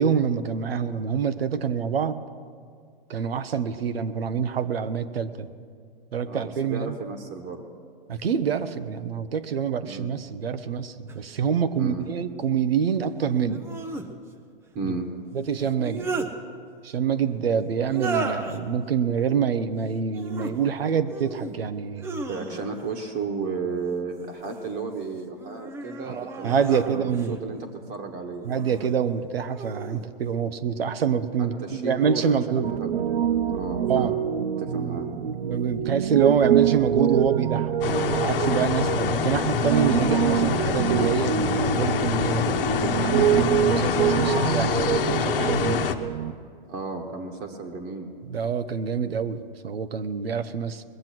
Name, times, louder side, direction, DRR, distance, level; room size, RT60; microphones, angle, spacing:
voice 1, 0.0-2.2 3.1-5.5 6.1-7.0 8.1-13.6 14.8-14.9 15.3-16.1 16.8-22.2 26.0-27.4 28.4-32.7 33.8-34.1 35.4-45.9 48.2-50.8, right 7 dB, 85° right, 11 dB, 0.9 m, -26 dB
voice 2, 6.3-7.7 9.8-10.1 11.8-12.1 14.7-15.1 22.3-28.5 31.6-33.0 33.5-34.2 34.6-35.1 46.7-48.1, right 4 dB, 35° right, 2 dB, 1.3 m, -33 dB
sound 1, 11.1-11.2 13.5-14.1 15.6-16.3 17.9-18.6 20.1-20.6 21.1-21.6 22.0-22.9 24.1-24.7 25.3-27.4 28.4-28.9 29.5-30.1, right 4 dB, 10° right, 0.5 m, -34 dB
Piano, 32.6-46.3, right 9 dB, 70° right, 0.6 m, -25 dB
sound 2, 37.8-46.0, left 7 dB, 65° left, 1.1 m, -26 dB
20.5 x 7.6 x 6.0 m, 2.1 s
hypercardioid pair, 140°, 29 cm